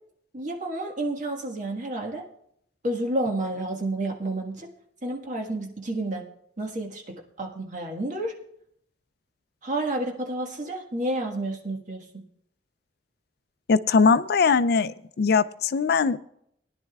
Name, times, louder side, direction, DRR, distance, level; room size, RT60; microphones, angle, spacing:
voice 1, 0.3-2.2 2.8-4.7 5.0-6.3 6.6-8.3 9.6-12.2, right 1 dB, 45° right, 1 dB, 1.6 m, -30 dB
voice 2, 13.7-16.2, left 5 dB, 60° left, 14 dB, 0.4 m, -21 dB
19.5 x 10.5 x 2.4 m, 0.72 s
head